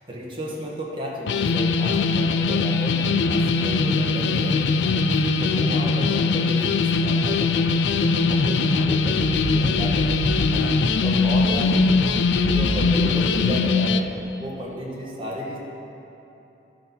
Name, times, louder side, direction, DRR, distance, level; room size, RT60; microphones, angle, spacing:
voice 1, 0.0-7.8 8.1-11.9 12.2-14.1 14.4-15.6, equal, 30° right, -4 dB, 1.5 m, -33 dB
sound 1, 1.3-14.0, left 4 dB, 75° left, 0.4 m, -21 dB
sound 2, 8.0-13.1, equal, 10° left, 1.1 m, -32 dB
11.5 x 6.0 x 5.5 m, 3.0 s
head